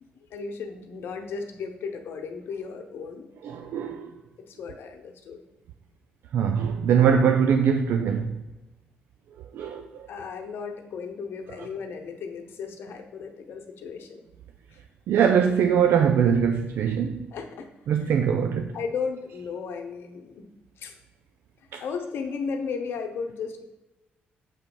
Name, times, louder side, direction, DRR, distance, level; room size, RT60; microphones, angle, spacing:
voice 1, 0.2-3.3 4.4-5.4 10.1-14.2 14.7-14.8 17.3-17.7 18.0-18.2 18.7-20.4 20.8-21.0 21.6-23.6, left 5 dB, 70° left, 0.8 m, -35 dB
voice 2, 3.4-4.1 6.3-8.4 9.5-10.1 15.1-17.3 17.9-18.8 21.7-21.8, right 7 dB, 75° right, 0.4 m, -22 dB
7.0 x 3.0 x 5.2 m
cardioid pair, 70°, 4 cm